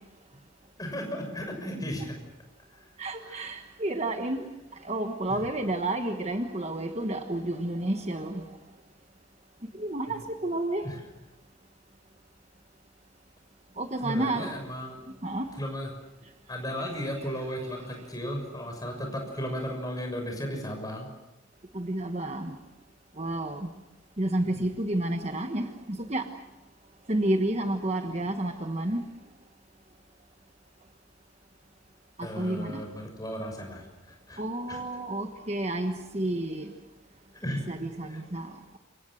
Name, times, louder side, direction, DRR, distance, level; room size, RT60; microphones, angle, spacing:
voice 1, 0.8-2.2 2.7-2.8 3.2-3.4 5.3-5.4 10.1-10.2 10.8-11.0 14.0-15.0 15.6-15.9 16.5-21.1 24.4-24.6 32.2-34.4 34.7-34.8 37.3-37.7 38.1-38.2, equal, 20° left, 3 dB, 6.3 m, -35 dB
voice 2, 3.0-4.4 4.8-8.4 9.8-10.8 13.8-14.5 15.2-15.5 21.7-22.5 23.2-23.7 24.2-26.3 27.1-29.0 32.4-32.8 34.4-36.6 37.5-38.5, right 1 dB, 30° right, 6 dB, 1.2 m, -30 dB
28.0 x 25.5 x 6.5 m, 1.0 s
head